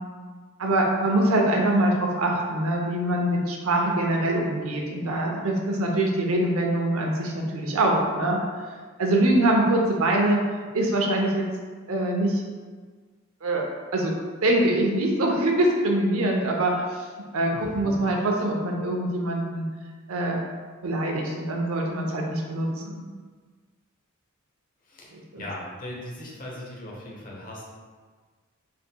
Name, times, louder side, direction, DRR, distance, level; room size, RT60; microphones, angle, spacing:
voice 1, 0.6-8.4 9.0-10.4 10.7-11.5 11.9-12.4 13.4-13.6 13.9-14.1 14.4-17.1 17.3-19.7 20.1-20.4 20.8-23.0 25.1-25.4, right 1 dB, 85° right, 0 dB, 0.7 m, -24 dB
voice 2, 17.5-17.9 24.8-27.6, left 1 dB, 40° left, -3 dB, 0.9 m, -39 dB
4.5 x 3.6 x 2.2 m, 1.5 s
head